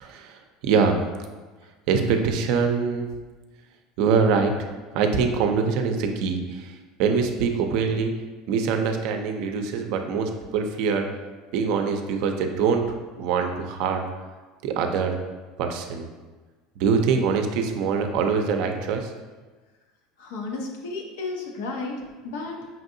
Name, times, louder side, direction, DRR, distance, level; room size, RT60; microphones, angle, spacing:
voice 1, 0.0-1.0 1.9-3.1 4.0-4.5 4.9-6.7 7.0-8.1 8.5-11.0 11.5-12.8 13.2-14.0 14.6-15.2 15.6-16.1 16.8-19.1, right 5 dB, 70° right, 5 dB, 0.4 m, -24 dB
voice 2, 20.2-22.7, left 3 dB, 85° left, 1 dB, 0.7 m, -33 dB
5.4 x 2.6 x 2.6 m, 1.3 s
supercardioid pair, 120°, 0 cm